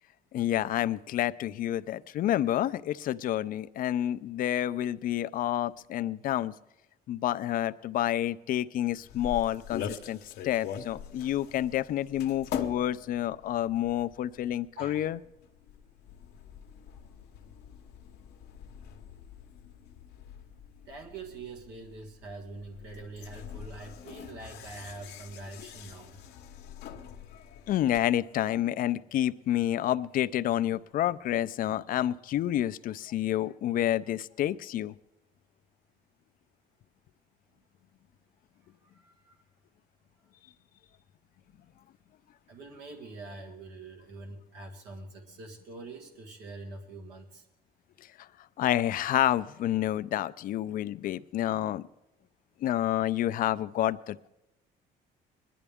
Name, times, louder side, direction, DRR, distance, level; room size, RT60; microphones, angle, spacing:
voice 1, 0.3-6.5 7.1-15.2 27.7-34.9 48.2-48.3 48.6-51.9 52.6-54.3, left 12 dB, 55° left, 15 dB, 0.4 m, -29 dB
sound 1, 8.9-28.0, left 8 dB, 80° left, 0.9 m, -44 dB
voice 2, 20.9-26.2 38.8-39.4 42.5-47.5, right 2 dB, 85° right, 1 dB, 1.8 m, -44 dB
20.0 x 11.0 x 3.5 m, 0.94 s
cardioid pair, 110°, 17 cm